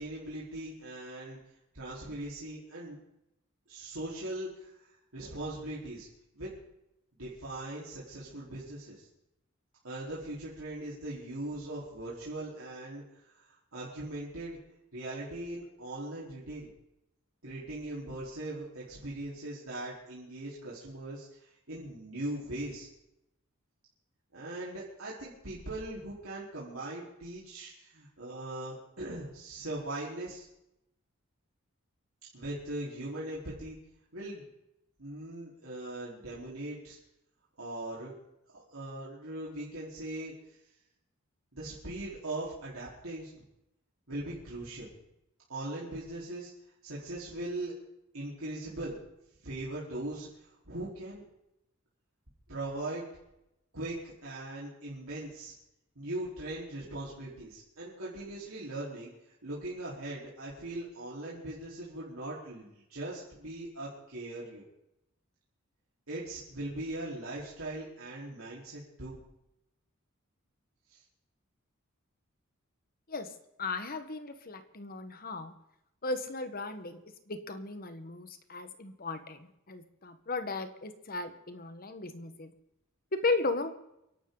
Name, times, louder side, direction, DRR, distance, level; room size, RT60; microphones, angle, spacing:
voice 1, 0.0-1.4 1.7-3.0 3.7-6.1 6.3-6.6 7.2-9.1 9.8-14.6 14.9-16.7 17.4-22.9 24.3-30.5 32.3-33.8 34.1-34.5 35.0-37.0 37.6-38.1 38.5-40.3 41.5-43.4 44.1-44.9 45.5-46.5 46.8-47.7 48.1-49.0 49.4-51.2 52.5-53.0 53.7-55.5 56.0-59.1 59.4-64.6 66.1-69.2 70.9-71.0, right 1 dB, 85° right, -7 dB, 4.3 m, -40 dB
voice 2, 73.6-75.5 76.0-77.0 77.3-82.5 83.1-83.7, left 3 dB, 45° left, 9 dB, 1.4 m, -35 dB
29.5 x 11.5 x 4.0 m, 0.86 s
head